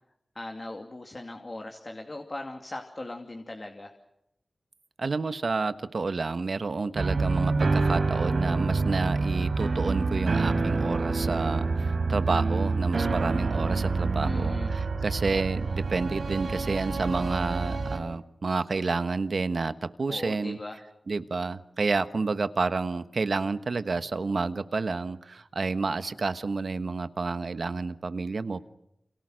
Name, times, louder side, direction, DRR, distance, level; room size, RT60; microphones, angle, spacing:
voice 1, 0.3-3.9 14.2-14.7 20.1-20.8, left 2 dB, 35° left, 3 dB, 2.6 m, -39 dB
voice 2, 5.0-20.6 21.1-28.6, right 4 dB, 65° right, 11 dB, 1.3 m, -30 dB
sound 1, 7.0-18.0, right 3 dB, 80° right, 4.6 m, -27 dB
30.0 x 27.5 x 6.5 m, 0.81 s
wide cardioid pair, 90°, 0 cm